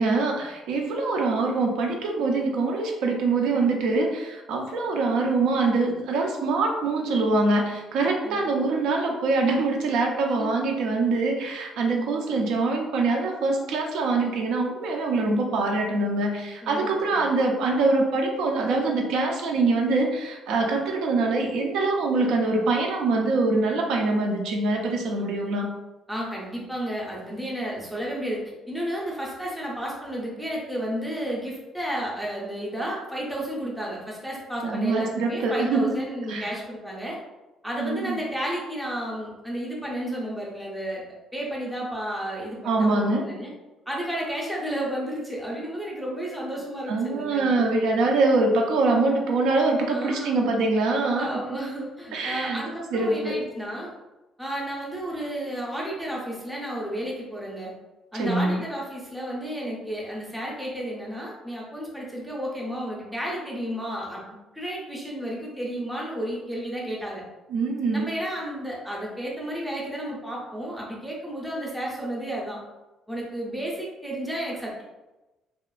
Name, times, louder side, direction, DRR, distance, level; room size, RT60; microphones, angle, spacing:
voice 1, 0.0-25.7 34.6-36.0 36.3-36.6 37.8-38.2 42.6-43.2 46.9-51.4 52.1-52.6 52.9-53.4 58.1-58.6 67.5-68.1, right 3 dB, 75° right, 1 dB, 0.4 m, -24 dB
voice 2, 11.9-12.6 15.1-15.4 16.6-17.2 26.1-37.2 37.6-41.0 41.3-43.5 43.9-47.7 49.9-50.4 51.1-53.9 54.4-57.7 58.1-67.2 67.9-72.6 73.1-74.8, equal, ahead, -4 dB, 0.5 m, -32 dB
2.7 x 2.3 x 2.3 m, 1.1 s
cardioid pair, 175°, 0 cm